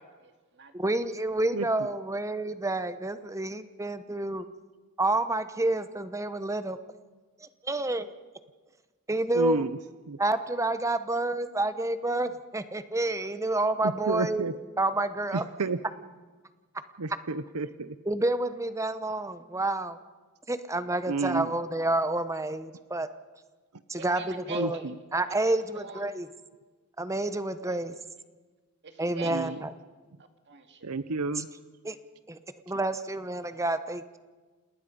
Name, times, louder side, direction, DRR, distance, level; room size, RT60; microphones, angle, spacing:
voice 1, 0.0-0.7 1.0-1.1 23.9-24.9 25.5-26.1 27.7-27.8 28.8-29.6 30.5-30.9, right 4 dB, 50° right, 6 dB, 2.3 m, -43 dB
voice 2, 0.7-4.4 5.0-6.8 7.4-8.1 9.1-9.6 10.2-14.4 14.8-15.4 18.0-20.0 20.5-23.1 23.9-24.8 25.1-26.3 27.0-27.9 29.0-29.7 31.4-31.5 31.8-32.0 32.3-32.4 32.7-34.2, right 2 dB, 15° right, 12 dB, 0.9 m, -29 dB
voice 3, 9.3-9.8 10.1-10.2 13.8-14.5 15.3-15.8 17.0-18.0 21.1-21.5 24.5-24.9 29.2-29.6 30.8-31.5, right 3 dB, 85° right, 13 dB, 0.8 m, -31 dB
29.0 x 19.5 x 5.3 m, 1.3 s
head